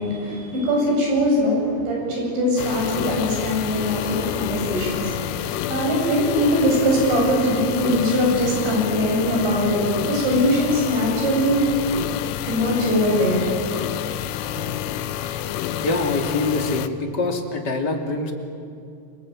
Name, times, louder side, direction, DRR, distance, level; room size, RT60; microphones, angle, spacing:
voice 1, 0.0-11.7 12.5-13.4 14.6-14.7, equal, 85° right, -1 dB, 10.0 m, -21 dB
sound 1, 2.6-16.9, left 11 dB, 80° left, 3.0 m, -29 dB
voice 2, 15.8-18.3, left 2 dB, 30° left, 3 dB, 2.5 m, -24 dB
29.5 x 20.5 x 9.1 m, 2.5 s
omnidirectional pair, 5.1 m